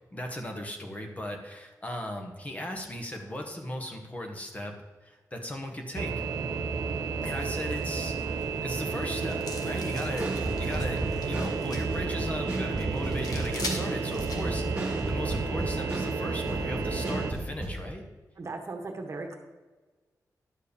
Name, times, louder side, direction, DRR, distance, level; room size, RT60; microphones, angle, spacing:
voice 1, 0.1-4.7 5.0-6.2 7.2-8.2 8.6-18.0, equal, 20° left, 3 dB, 1.1 m, -37 dB
sound 1, 5.9-17.3, right 4 dB, 80° right, 1.0 m, -31 dB
sound 2, 7.2-15.0, left 2 dB, 70° left, 1.4 m, -44 dB
sound 3, 10.2-16.2 16.5-17.8, right 1 dB, 15° right, 2.2 m, -34 dB
voice 2, 18.4-19.4, right 3 dB, 45° right, 4 dB, 1.2 m, -37 dB
11.0 x 4.7 x 6.8 m, 1.3 s
wide cardioid pair, 180°, 7 cm